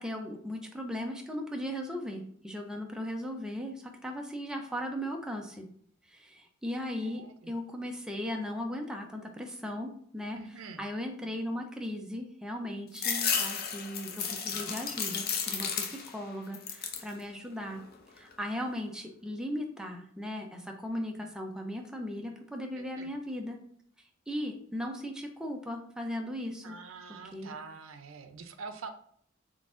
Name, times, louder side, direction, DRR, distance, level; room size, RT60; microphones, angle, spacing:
voice 1, 0.0-5.7 6.1-10.4 10.8-17.8 18.2-23.6 24.3-26.8 27.3-27.6, equal, 5° right, 2 dB, 0.5 m, -37 dB
voice 2, 7.0-7.5 10.4-10.9 22.7-23.2 26.6-28.9, right 4 dB, 70° right, 8 dB, 0.5 m, -45 dB
sound 1, 12.9-16.2 16.5-17.1 17.6-18.3, left 6 dB, 50° left, 0.5 m, -33 dB
3.9 x 3.5 x 2.5 m, 0.64 s
head